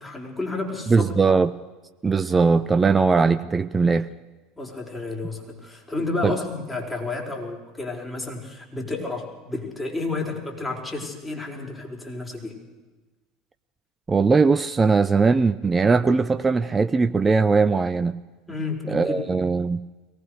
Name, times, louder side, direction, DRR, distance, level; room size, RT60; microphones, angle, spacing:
voice 1, 0.0-1.1 4.6-12.5 18.5-19.2, left 3 dB, 15° left, 1 dB, 5.4 m, -31 dB
voice 2, 0.9-1.5 2.0-4.1 6.2-6.3 14.1-18.2 18.9-19.8, right 4 dB, 20° right, 12 dB, 0.7 m, -20 dB
23.0 x 19.0 x 6.7 m, 1.2 s
hypercardioid pair, 70°, 0 cm